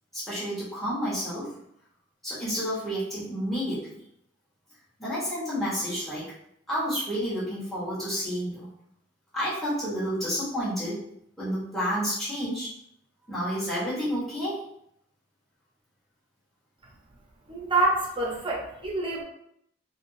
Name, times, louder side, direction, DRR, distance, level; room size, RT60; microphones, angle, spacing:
voice 1, 0.1-1.5 2.2-3.8 5.0-6.3 6.7-8.7 9.3-11.0 11.4-12.7 13.3-14.6, equal, ahead, -10 dB, 1.2 m, -30 dB
voice 2, 17.5-19.2, right 2 dB, 25° right, -3 dB, 0.8 m, -26 dB
3.4 x 2.8 x 2.7 m, 0.74 s
head